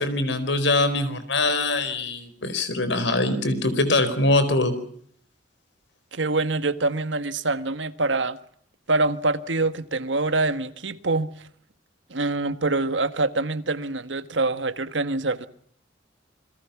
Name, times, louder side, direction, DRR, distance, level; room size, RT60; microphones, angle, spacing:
voice 1, 0.0-4.7, left 2 dB, 75° left, 4.6 m, -23 dB
voice 2, 6.1-8.4 8.9-11.3 12.1-15.5, right 2 dB, 85° right, 1.6 m, -25 dB
28.5 x 22.0 x 6.0 m
head